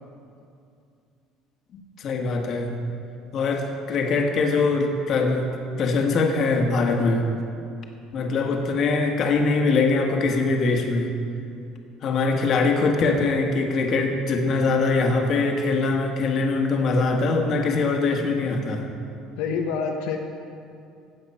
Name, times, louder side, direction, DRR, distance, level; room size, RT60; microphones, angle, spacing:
voice 1, 2.0-2.8 3.3-7.3 8.1-11.1 12.0-18.9, left 3 dB, 45° left, 3 dB, 1.6 m, -22 dB
voice 2, 19.4-20.2, left 5 dB, 85° left, 2 dB, 1.0 m, -26 dB
16.0 x 7.9 x 5.6 m, 2.5 s
cardioid pair, 140°, 0 cm